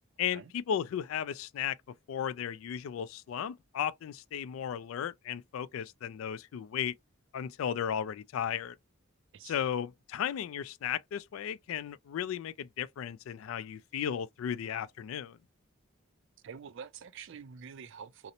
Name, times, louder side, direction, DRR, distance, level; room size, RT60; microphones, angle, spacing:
voice 1, 0.2-1.8 2.1-6.9 7.3-8.8 9.4-15.4, left 9 dB, 80° left, 0.3 m, -35 dB
voice 2, 9.3-9.7 16.4-18.3, right 6 dB, 65° right, 0.4 m, -47 dB
2.8 x 2.0 x 2.5 m
head